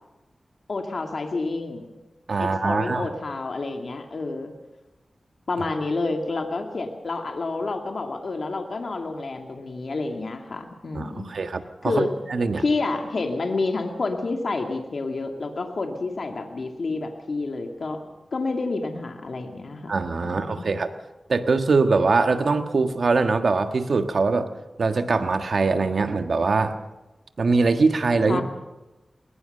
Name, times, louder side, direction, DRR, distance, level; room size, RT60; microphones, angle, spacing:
voice 1, 0.7-1.9 2.4-4.5 5.5-11.3 11.8-12.1 12.6-18.0 18.3-19.9 20.2-20.7 28.3-28.4, left 3 dB, 70° left, 4 dB, 2.3 m, -29 dB
voice 2, 2.3-3.1 10.9-12.0 12.3-12.6 19.9-20.9 21.3-24.5 24.8-26.7 27.4-28.4, right 4 dB, 70° right, 8 dB, 1.5 m, -22 dB
21.0 x 20.5 x 6.7 m, 1.1 s
wide cardioid pair, 70°, 0 cm